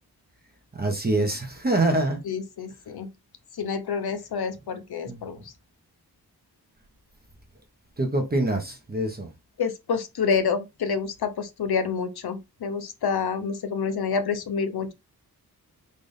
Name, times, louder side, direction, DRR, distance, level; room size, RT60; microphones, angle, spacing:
voice 1, 0.8-2.2 5.1-5.3 8.0-9.3, right 2 dB, 25° right, 0.9 m, -25 dB
voice 2, 2.2-3.1 3.5-5.4 9.6-14.9, left 5 dB, 75° left, 0.7 m, -28 dB
4.0 x 2.5 x 3.4 m
cardioid pair, 70°, 38 cm